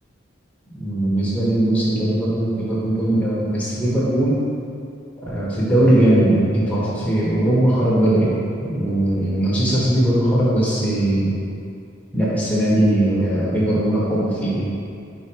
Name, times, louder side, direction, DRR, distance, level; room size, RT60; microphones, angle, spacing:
voice 1, 0.7-4.4 5.2-8.3 8.6-11.3 12.1-14.8, right 1 dB, 5° left, -8 dB, 1.2 m, -19 dB
4.9 x 4.2 x 4.6 m, 2.5 s
head